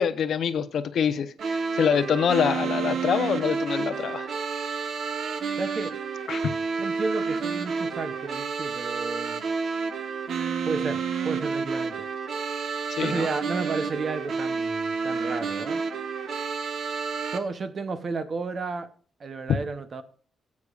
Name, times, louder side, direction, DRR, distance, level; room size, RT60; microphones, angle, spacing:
voice 1, 0.0-4.3 6.3-6.4 12.9-13.3 19.5-19.6, left 7 dB, 55° left, 0.6 m, -25 dB
sound 1, 1.4-17.4, right 5 dB, 55° right, 0.9 m, -30 dB
voice 2, 5.6-6.0 6.8-9.5 10.7-12.0 13.0-15.8 17.3-18.9 19.2-20.0, right 4 dB, 35° right, 0.7 m, -32 dB
18.5 x 8.3 x 2.4 m
wide cardioid pair, 175°, 0 cm